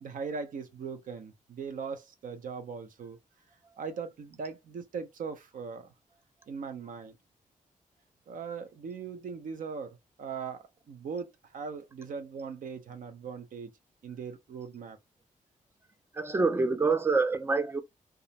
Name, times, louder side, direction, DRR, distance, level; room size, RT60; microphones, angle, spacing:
voice 1, 0.0-3.2 3.8-5.9 6.5-7.2 8.3-13.7 14.0-15.0, right 5 dB, 70° right, 0.6 m, -39 dB
voice 2, 16.1-17.8, right 3 dB, 15° right, 0.3 m, -26 dB
2.4 x 2.0 x 2.7 m
wide cardioid pair, 170°, 14 cm